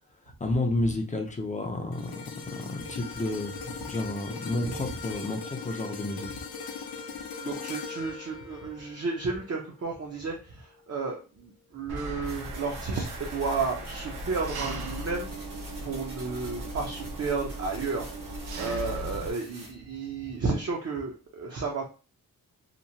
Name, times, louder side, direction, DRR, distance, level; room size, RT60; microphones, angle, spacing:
voice 1, 0.4-2.2 2.5-3.5 3.9-6.3, left 2 dB, 20° left, 4 dB, 0.4 m, -30 dB
sound 1, 1.9-10.3 10.7-10.9, left 5 dB, 70° left, 0.5 m, -40 dB
voice 2, 7.4-15.3 15.8-18.1 18.5-21.9, right 4 dB, 45° right, 0 dB, 0.5 m, -32 dB
Engine, 11.9-19.3, right 1 dB, 80° right, 0.7 m, -37 dB
sound 2, 12.2-19.7, right 1 dB, 60° right, 1.4 m, -48 dB
2.9 x 2.1 x 2.6 m, 0.34 s
wide cardioid pair, 125°, 36 cm